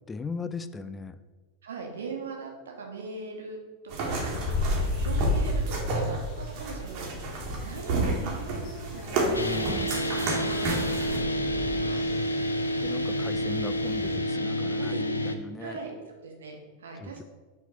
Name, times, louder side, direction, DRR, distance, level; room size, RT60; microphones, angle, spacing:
voice 1, 0.1-1.2 9.3-9.9 12.8-15.8 17.0-17.2, left 4 dB, 15° left, 13 dB, 0.3 m, -38 dB
voice 2, 1.6-3.6 3.8-12.1 14.8-15.0 15.6-17.2, right 4 dB, 65° right, 1 dB, 1.3 m, -41 dB
sound 1, 3.9-11.2, right 2 dB, 45° right, 1.5 m, -31 dB
sound 2, 4.3-14.2, left 2 dB, 40° left, 1.4 m, -34 dB
sound 3, 9.3-15.4, equal, 80° left, 0.5 m, -29 dB
5.7 x 4.2 x 5.4 m, 1.3 s
figure-of-eight pair, 90°, 0 cm